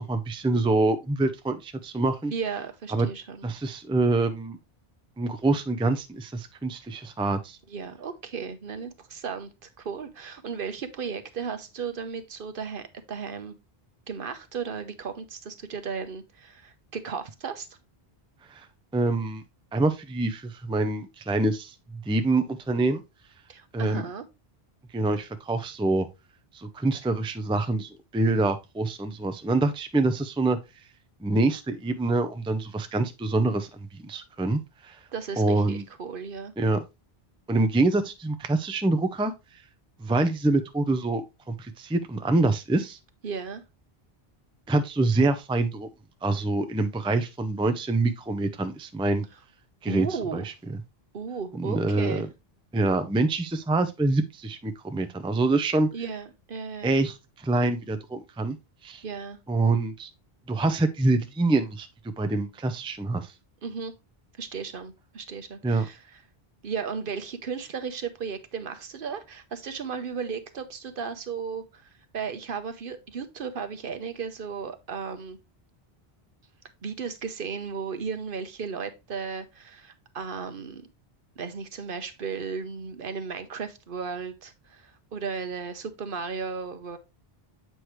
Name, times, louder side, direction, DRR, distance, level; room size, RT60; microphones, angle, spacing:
voice 1, 0.0-2.3 2.9-3.1 3.4-4.6 5.2-7.6 18.5-18.7 18.9-19.4 19.7-23.0 23.7-24.0 24.9-26.1 26.5-30.6 31.2-35.0 35.4-35.8 36.6-36.8 37.5-39.3 40.0-43.0 44.7-45.9 46.2-49.2 49.8-50.1 50.3-50.4 51.6-52.3 52.7-55.9 56.8-58.6 58.8-59.0 59.5-60.1 60.5-61.9 62.2-63.3 65.6-65.9, right 2 dB, 5° right, 0.4 m, -25 dB
voice 2, 2.3-3.5 7.7-13.5 14.1-17.7 23.5-24.2 35.1-36.5 43.2-43.6 49.9-50.5 51.1-52.2 55.9-56.9 59.0-59.4 63.6-63.9 64.4-66.0 66.6-75.4 76.8-80.9 81.4-87.0, right 6 dB, 60° right, 1.0 m, -35 dB
7.7 x 4.9 x 3.1 m
omnidirectional pair, 1.0 m